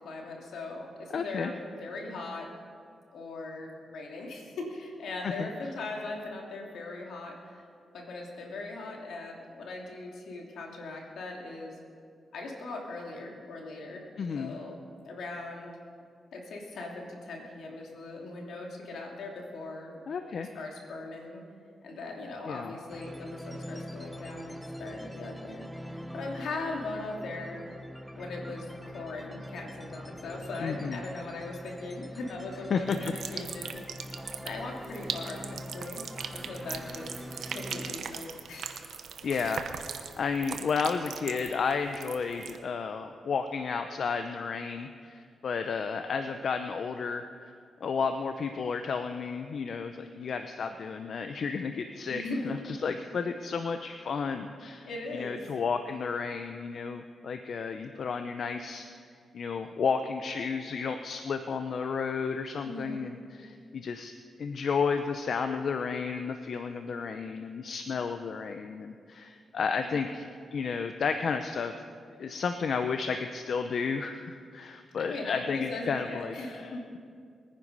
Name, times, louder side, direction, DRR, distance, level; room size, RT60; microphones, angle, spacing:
voice 1, 0.0-2.5 3.1-7.6 7.9-11.8 12.3-14.0 14.4-15.7 16.3-20.0 20.4-21.4 21.8-27.6 28.2-33.8 34.4-36.0 36.3-37.1 37.5-39.0 52.1-52.6 54.8-55.4 62.6-63.1 69.8-70.1 75.0-76.8, left 2 dB, 85° left, 0 dB, 2.7 m, -39 dB
voice 2, 1.1-1.5 5.2-5.5 14.2-14.5 20.1-20.5 22.5-22.7 30.6-31.0 32.7-33.4 39.2-47.5 47.8-58.9 59.3-64.1 64.4-71.7 72.2-77.0, left 5 dB, 65° left, 7 dB, 0.6 m, -32 dB
sound 1, 22.9-38.0, equal, ahead, 1.0 m, -43 dB
sound 2, 32.9-42.6, right 7 dB, 80° right, 0.9 m, -40 dB
21.5 x 9.9 x 5.5 m, 2.3 s
cardioid pair, 90°, 0 cm